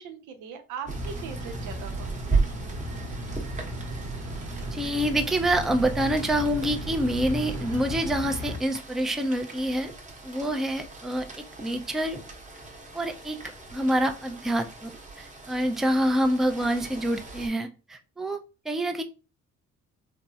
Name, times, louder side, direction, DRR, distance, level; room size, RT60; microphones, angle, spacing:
voice 1, 0.0-2.4, right 7 dB, 85° right, 7 dB, 0.6 m, -40 dB
sound 1, 0.8-8.6, right 1 dB, 60° right, 0.9 m, -35 dB
Rain, 0.9-17.5, right 3 dB, 25° right, 0.9 m, -37 dB
voice 2, 4.7-9.9 10.2-12.2 12.9-13.4 13.7-18.4 18.7-19.0, right 1 dB, ahead, 6 dB, 0.3 m, -27 dB
3.4 x 2.0 x 2.7 m, 0.32 s
cardioid pair, 90°, 30 cm